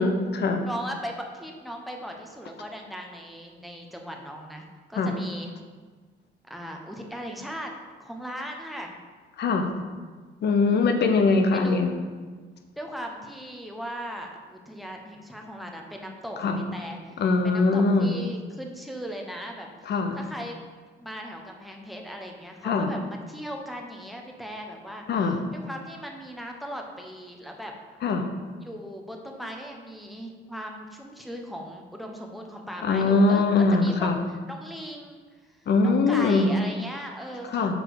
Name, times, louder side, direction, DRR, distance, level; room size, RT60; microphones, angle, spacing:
voice 1, 0.0-0.6 5.0-5.1 9.4-9.7 10.4-11.9 16.4-16.6 17.2-18.2 19.9-20.2 22.6-22.9 25.1-25.4 28.0-28.3 32.8-34.2 35.7-36.5 37.5-37.8, left 3 dB, 60° left, 6 dB, 0.7 m, -22 dB
voice 2, 0.6-5.5 6.4-7.7 8.0-9.0 10.7-11.0 11.5-11.8 12.8-17.1 17.4-20.6 21.0-25.0 25.5-27.7 28.6-34.1 34.5-35.2 35.5-37.8, equal, ahead, 2 dB, 0.8 m, -38 dB
6.2 x 3.2 x 4.7 m, 1.4 s
cardioid pair, 90°, 20 cm